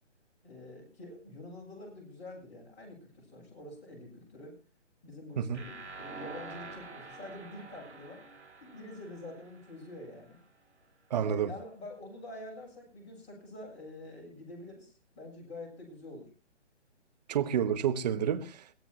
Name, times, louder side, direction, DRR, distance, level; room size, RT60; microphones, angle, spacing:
voice 1, 0.4-4.6 5.0-8.2 8.6-10.4 11.1-16.3, left 1 dB, 20° left, 7.9 m, -46 dB
sound 1, 5.5-10.4, right 3 dB, 65° right, 3.4 m, -47 dB
voice 2, 11.1-11.5 17.3-18.7, right 9 dB, 35° right, 1.2 m, -29 dB
22.5 x 16.0 x 2.9 m
figure-of-eight pair, 145°, 36 cm